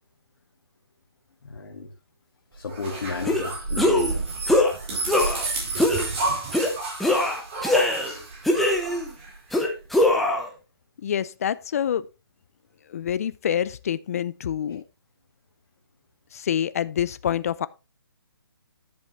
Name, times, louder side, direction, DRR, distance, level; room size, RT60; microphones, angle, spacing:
voice 1, 1.4-1.9 2.5-4.2 14.7-14.8, left 4 dB, 60° left, 1.9 m, -33 dB
sound 1, 2.7-9.6, right 3 dB, 30° right, 4.3 m, -31 dB
sound 2, 3.3-3.4 3.8-4.1 4.5-4.7 5.1-5.5 5.8-6.1 6.5-6.7 7.0-8.1 8.4-9.1 9.5-10.5, left 1 dB, ahead, 0.8 m, -21 dB
voice 2, 11.0-12.0 12.9-14.8 16.3-17.7, left 9 dB, 35° left, 0.5 m, -26 dB
11.0 x 7.0 x 3.1 m
hypercardioid pair, 165°, 13 cm